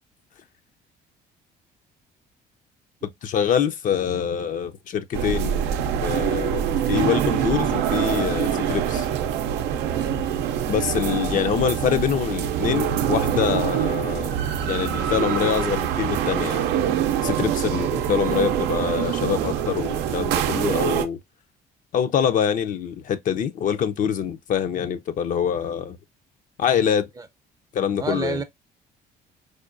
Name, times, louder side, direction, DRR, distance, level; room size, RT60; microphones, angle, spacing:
voice 1, 3.0-5.7 6.0-9.1 10.7-14.4 14.7-16.6 17.2-21.2 21.9-26.0 26.6-27.1 27.7-28.4, left 8 dB, 50° left, 0.5 m, -25 dB
sound 1, 5.1-21.0, right 9 dB, 85° right, 0.5 m, -24 dB
sound 2, 5.5-10.8, left 1 dB, 80° left, 1.8 m, -43 dB
voice 2, 9.8-10.1 27.2-27.3 28.0-28.4, right 4 dB, 20° right, 0.5 m, -30 dB
4.9 x 2.2 x 2.4 m
cardioid pair, 110°, 17 cm